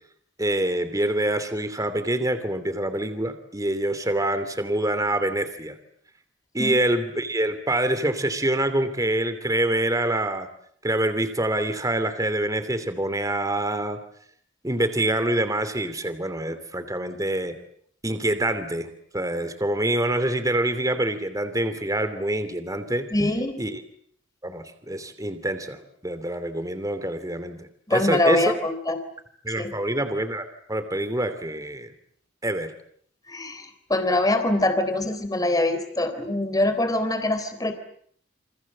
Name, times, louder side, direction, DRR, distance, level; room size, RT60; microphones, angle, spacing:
voice 1, 0.4-5.8 6.5-10.5 10.8-14.0 14.6-17.6 18.0-23.1 23.6-23.8 24.4-28.6 29.4-31.9 32.4-32.7, right 1 dB, 20° right, 10 dB, 2.9 m, -26 dB
voice 2, 23.1-23.6 27.9-29.0 29.6-29.7 33.3-37.7, left 1 dB, 20° left, 9 dB, 3.8 m, -24 dB
29.0 x 26.5 x 7.5 m, 0.64 s
head